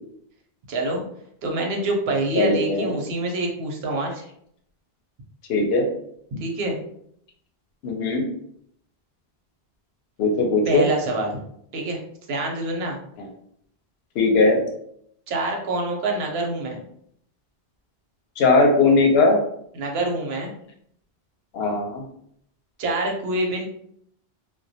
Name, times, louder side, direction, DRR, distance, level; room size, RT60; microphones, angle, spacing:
voice 1, 0.7-1.0 1.4-4.2 6.3-6.8 10.7-11.4 11.7-12.0 12.3-13.0 15.3-16.8 19.7-20.5 22.8-23.7, right 2 dB, 90° right, 1 dB, 0.9 m, -26 dB
voice 2, 2.3-2.9 5.5-5.8 7.8-8.2 10.2-10.9 14.2-14.6 18.4-19.4 21.5-22.0, left 3 dB, 80° left, 2 dB, 0.8 m, -19 dB
2.2 x 2.1 x 2.6 m, 0.69 s
omnidirectional pair, 1.0 m